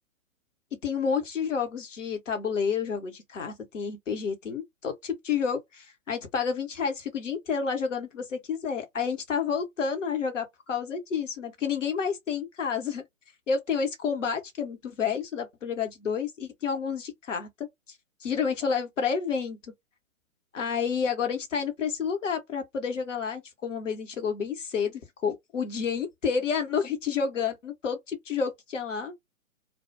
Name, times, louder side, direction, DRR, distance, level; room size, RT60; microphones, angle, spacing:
voice 1, 0.8-13.0 13.5-17.5 18.2-19.6 20.5-29.1, left 6 dB, 60° left, 1.0 m, -30 dB
2.3 x 2.2 x 2.6 m
figure-of-eight pair, 125°, 42 cm